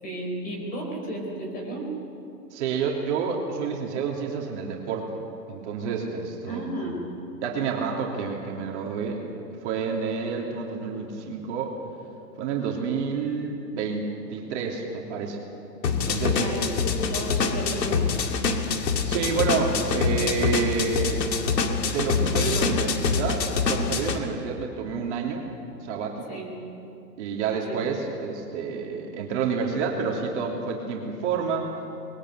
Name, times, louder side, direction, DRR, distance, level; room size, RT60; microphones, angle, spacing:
voice 1, 0.0-1.9 6.5-7.1 16.3-18.1 26.3-26.5 27.5-27.9, right 1 dB, 15° left, 0 dB, 4.6 m, -33 dB
voice 2, 2.5-5.1 5.5-6.7 7.4-9.2 9.6-11.7 12.4-15.4 16.1-16.4 18.7-21.2 21.9-25.4 25.8-26.4 27.2-31.7, right 5 dB, 45° right, -1 dB, 3.1 m, -29 dB
sound 1, 15.8-24.2, left 5 dB, 75° left, 2.4 m, -25 dB
23.5 x 21.5 x 8.1 m, 2.7 s
hypercardioid pair, 155°, 50 cm